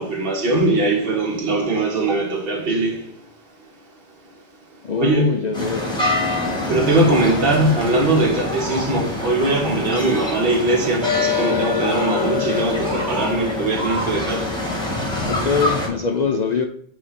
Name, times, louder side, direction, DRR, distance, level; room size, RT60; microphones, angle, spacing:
voice 1, 0.0-3.0 5.0-5.3 6.7-14.5, right 2 dB, 55° right, 1.4 m, -20 dB
voice 2, 4.8-5.9 15.2-16.7, left 5 dB, 50° left, 0.5 m, -23 dB
sound 1, 5.5-15.9, left 2 dB, 5° left, 1.6 m, -24 dB
8.4 x 2.8 x 4.1 m
omnidirectional pair, 1.1 m